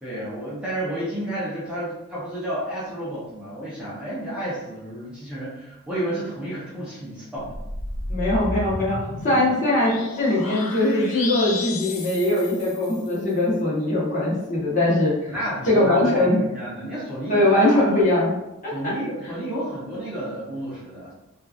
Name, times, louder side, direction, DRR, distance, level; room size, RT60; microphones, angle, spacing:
voice 1, 0.0-7.6 9.3-9.4 15.3-18.0 18.7-21.1, right 1 dB, 5° right, -9 dB, 0.6 m, -31 dB
sound 1, 7.4-13.2, left 2 dB, 90° left, 0.5 m, -33 dB
voice 2, 8.1-15.3 15.6-16.4 17.3-18.3 18.6-18.9, left 1 dB, 40° left, -7 dB, 1.0 m, -21 dB
2.9 x 2.4 x 2.3 m, 0.95 s
head